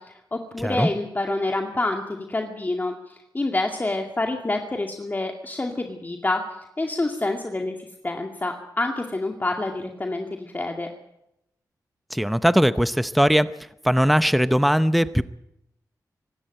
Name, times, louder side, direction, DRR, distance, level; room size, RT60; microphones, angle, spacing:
voice 1, 0.0-6.4 6.8-7.8 8.0-10.9, left 2 dB, 25° left, 2 dB, 2.3 m, -27 dB
voice 2, 0.6-0.9 12.1-13.5 13.8-15.2, equal, ahead, 13 dB, 0.7 m, -19 dB
24.5 x 12.5 x 9.1 m, 0.83 s
cardioid pair, 70°, 7 cm